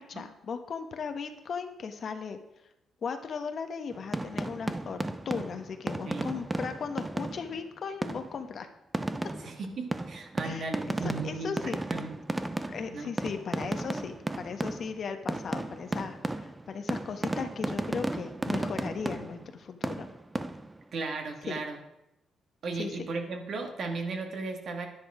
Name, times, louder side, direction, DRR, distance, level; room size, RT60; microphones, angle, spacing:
voice 1, 0.0-2.4 3.0-8.7 10.4-11.8 12.7-20.1 21.5-21.6 22.7-23.1, left 5 dB, 55° left, 7 dB, 1.2 m, -37 dB
sound 1, 3.9-7.6 8.0-8.4 8.9-15.0 15.3-19.6 19.8-20.8, right 2 dB, 15° right, 0.6 m, -34 dB
voice 2, 6.1-6.4 9.4-12.4 12.9-13.1 20.9-21.8 22.6-24.9, right 3 dB, 60° right, 4 dB, 1.9 m, -36 dB
10.0 x 9.9 x 4.9 m, 0.88 s
cardioid pair, 90°, 0 cm